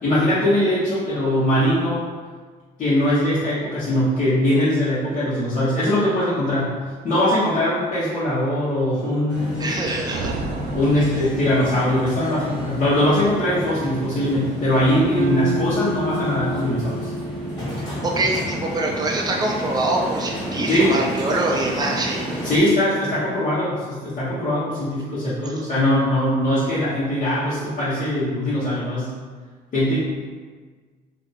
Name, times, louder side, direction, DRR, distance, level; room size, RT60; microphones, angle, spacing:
voice 1, 0.0-2.0 2.8-6.7 7.0-9.7 10.7-17.1 20.7-20.9 22.4-29.1 29.7-30.0, left 1 dB, 45° left, -12 dB, 1.1 m, -21 dB
sound 1, 9.3-22.6, equal, 25° left, 1.5 m, -31 dB
voice 2, 9.6-10.3 11.0-11.1 18.0-22.2, right 2 dB, 25° right, -1 dB, 0.6 m, -24 dB
sound 2, 10.1-12.1, right 3 dB, 85° right, 0.4 m, -32 dB
sound 3, 15.1-19.5, right 1 dB, 45° right, 0.9 m, -30 dB
2.7 x 2.5 x 4.0 m, 1.5 s
cardioid pair, 110°, 17 cm